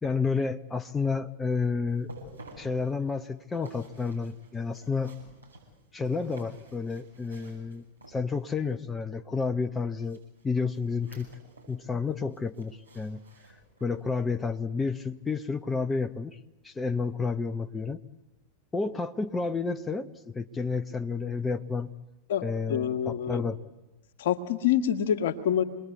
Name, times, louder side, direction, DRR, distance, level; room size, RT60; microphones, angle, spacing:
voice 1, 0.0-2.1 2.6-5.2 5.9-11.3 11.7-13.2 13.8-16.4 16.6-18.0 18.7-21.9 22.4-23.6, left 4 dB, 15° left, 7 dB, 0.9 m, -30 dB
sound 1, 1.9-8.6 10.0-11.8 12.1-14.1 14.5-14.7 15.2-15.3, right 1 dB, 80° right, 7.7 m, -52 dB
voice 2, 22.3-23.4 24.2-25.6, left 9 dB, 55° left, 9 dB, 1.8 m, -26 dB
27.5 x 21.0 x 8.1 m, 1.1 s
figure-of-eight pair, 90°, 0 cm